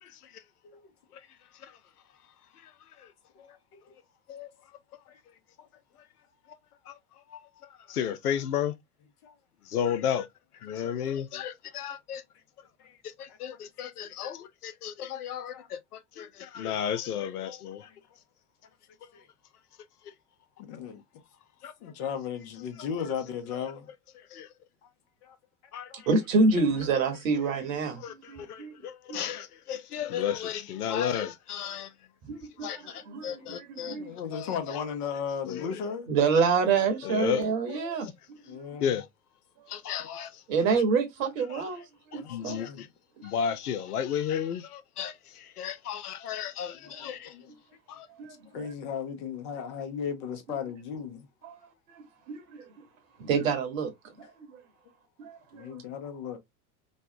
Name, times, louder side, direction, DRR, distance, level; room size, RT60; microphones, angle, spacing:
voice 1, 3.3-3.8 5.1-5.2 5.6-5.7 9.2-9.3 10.7-10.8 11.3-11.7 12.8-13.0 13.3-13.6 14.0-14.1 15.5-15.7 19.1-19.3 20.7-21.0 21.8-23.9 25.2-25.4 25.9-26.0 28.0-28.1 28.4-28.5 30.2-30.7 31.6-31.8 32.6-32.7 33.4-33.5 33.9-36.1 38.5-39.0 42.1-42.9 46.7-47.5 48.5-51.3 55.5-56.4, left 7 dB, 45° left, 0.9 m, -37 dB
voice 2, 7.9-8.7 9.7-10.3 10.6-12.2 13.2-15.8 16.2-17.9 21.6-21.7 24.3-24.5 25.7-26.1 28.0-31.9 32.6-34.0 34.3-34.6 35.5-35.8 37.0-38.0 38.8-39.1 39.7-40.3 41.5-41.6 42.1-42.9 43.2-47.3 47.9-48.1, left 8 dB, 70° left, 0.6 m, -33 dB
voice 3, 26.1-28.7 29.1-29.2 32.2-34.1 36.1-38.8 40.5-41.8 42.1-42.6 46.9-47.0 48.1-48.7 51.4-52.6 53.2-53.9 54.2-54.6 55.2-55.8, right 4 dB, 55° right, 1.3 m, -28 dB
3.2 x 2.2 x 2.8 m
figure-of-eight pair, 85°, 46 cm